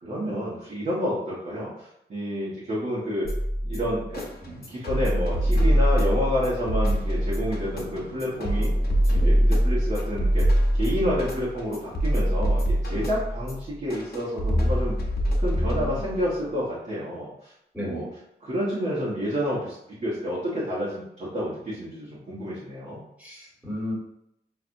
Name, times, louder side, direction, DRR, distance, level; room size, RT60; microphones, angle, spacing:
voice 1, 0.0-3.3 3.7-4.2 4.7-8.7 9.1-10.5 10.7-14.9 15.4-18.1 18.4-19.8 20.0-23.0, equal, 50° right, -8 dB, 1.1 m, -29 dB
sound 1, 3.2-16.2, equal, 70° left, 0.8 m, -24 dB
sound 2, 4.2-13.5, right 2 dB, 70° right, 1.1 m, -48 dB
voice 2, 15.5-16.0 17.7-18.1 23.2-23.9, equal, 10° right, -6 dB, 1.5 m, -35 dB
5.9 x 2.5 x 2.6 m, 0.79 s
wide cardioid pair, 175°, 17 cm